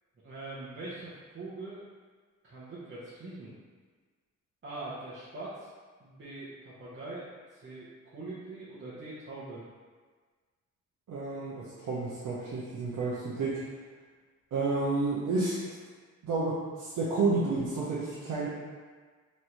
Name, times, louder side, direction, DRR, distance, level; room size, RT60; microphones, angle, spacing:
voice 1, 0.2-1.8 2.4-3.5 4.6-5.7 6.0-9.6, right 2 dB, 40° right, -10 dB, 0.9 m, -42 dB
voice 2, 11.1-13.6 14.5-15.5 16.2-18.5, right 3 dB, 75° right, -8 dB, 0.8 m, -30 dB
3.2 x 2.6 x 4.4 m, 1.5 s
cardioid pair, 105°, 32 cm